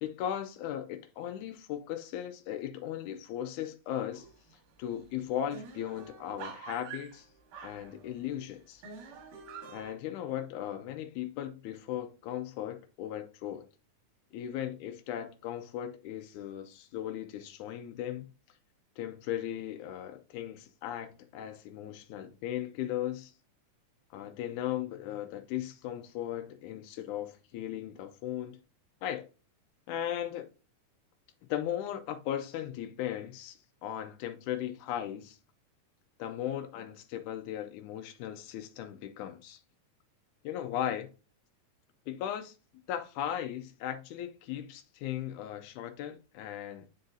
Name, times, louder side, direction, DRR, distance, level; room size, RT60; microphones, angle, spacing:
voice 1, 0.0-4.3 4.8-7.3 7.6-8.8 9.7-13.6 14.3-18.3 19.0-23.3 24.1-28.6 29.0-29.3 29.9-30.5 31.5-35.4 36.2-39.6 40.4-41.1 42.1-42.6 42.9-46.9, left 11 dB, 85° left, 2.1 m, -37 dB
sound 1, 4.1-4.5 4.9-5.0 5.2-8.3 8.8-9.9, right 6 dB, 90° right, 3.0 m, -47 dB
9.6 x 4.0 x 2.6 m
omnidirectional pair, 3.5 m